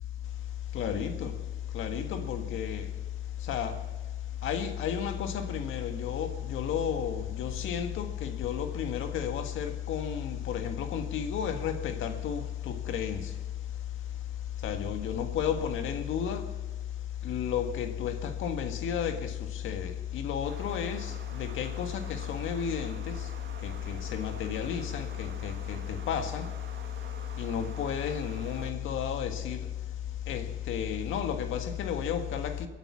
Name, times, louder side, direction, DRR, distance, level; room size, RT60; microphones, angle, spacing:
voice 1, 0.7-1.4 1.7-2.9 3.5-3.8 4.4-13.3 14.6-16.5 17.2-23.2 23.6-26.5 27.4-29.7 30.3-32.7, left 8 dB, 80° left, 1.7 m, -32 dB
sound 1, 20.4-28.7, right 7 dB, 65° right, 1.8 m, -48 dB
23.0 x 9.2 x 6.1 m
cardioid pair, 90°, 20 cm